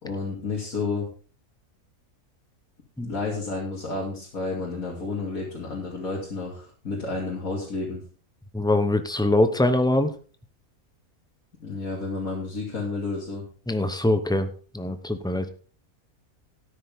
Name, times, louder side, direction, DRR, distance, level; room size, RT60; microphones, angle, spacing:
voice 1, 0.0-1.1 3.0-8.0 11.6-13.4, left 3 dB, 65° left, -5 dB, 3.0 m, -31 dB
voice 2, 8.5-10.1 13.7-15.5, left 1 dB, 5° left, 9 dB, 0.5 m, -23 dB
13.0 x 10.0 x 3.6 m, 0.39 s
omnidirectional pair, 1.6 m